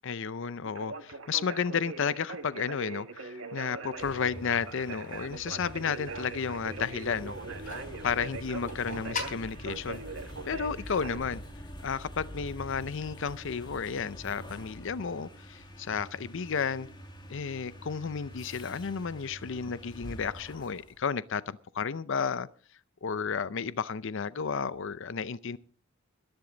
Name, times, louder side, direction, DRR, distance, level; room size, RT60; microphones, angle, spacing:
voice 1, 0.0-7.3 8.0-10.0 10.4-11.4 11.8-16.9 17.3-22.5 23.0-25.6, left 6 dB, 60° left, 0.5 m, -32 dB
Conversation, 0.6-11.2, right 3 dB, 70° right, 2.0 m, -42 dB
sound 1, 3.8-21.0, equal, 20° left, 2.0 m, -46 dB
sound 2, 7.3-12.3, left 3 dB, 40° left, 3.4 m, -44 dB
21.0 x 10.5 x 3.9 m
head